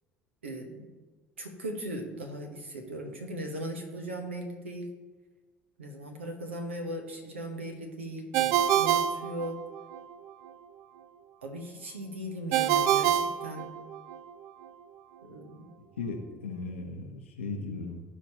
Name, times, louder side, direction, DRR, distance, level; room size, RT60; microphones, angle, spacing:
voice 1, 0.4-0.9 1.4-4.9 5.8-9.6 11.4-13.7 15.2-15.7, right 1 dB, 85° right, 4 dB, 1.2 m, -38 dB
Ringtone, 8.3-10.0 12.5-14.2, right 10 dB, 60° right, 0.4 m, -26 dB
voice 2, 16.0-18.0, left 3 dB, 85° left, 2 dB, 0.8 m, -37 dB
15.0 x 5.1 x 2.9 m, 1.3 s
figure-of-eight pair, 60°, 6 cm